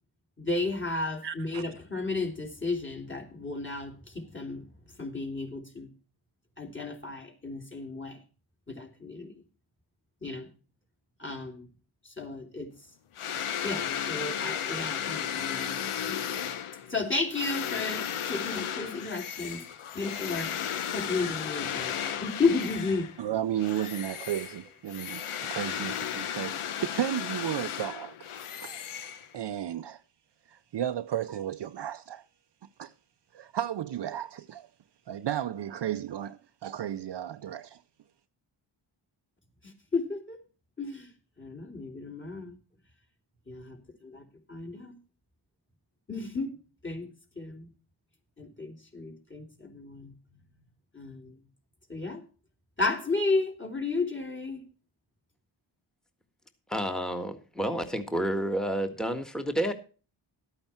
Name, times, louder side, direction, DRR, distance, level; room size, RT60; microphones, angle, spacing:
voice 1, 0.4-5.9 6.6-8.2 8.7-9.3 10.2-10.5 11.2-11.7 12.0-12.7 13.6-16.4 16.9-19.6 19.9-20.5 20.9-23.1 39.6-40.4 40.8-41.1 41.4-42.6 43.5-44.9 46.1-46.6 46.8-47.1 47.3-47.7 48.4-50.5 50.9-51.4 51.9-52.2 52.8-54.6, left 3 dB, 25° left, 3.3 m, -33 dB
voice 2, 1.2-1.6 23.2-25.2 25.5-28.1 28.6-28.8 29.3-30.0 30.5-32.3 32.8-32.9 33.3-34.7 35.1-37.8, right 11 dB, 55° right, 0.6 m, -33 dB
sound 1, 13.2-23.2 23.6-29.6, left 9 dB, 80° left, 1.0 m, -34 dB
voice 3, 56.7-59.7, right 1 dB, ahead, 1.6 m, -30 dB
12.5 x 8.8 x 4.4 m
cardioid pair, 55°, 49 cm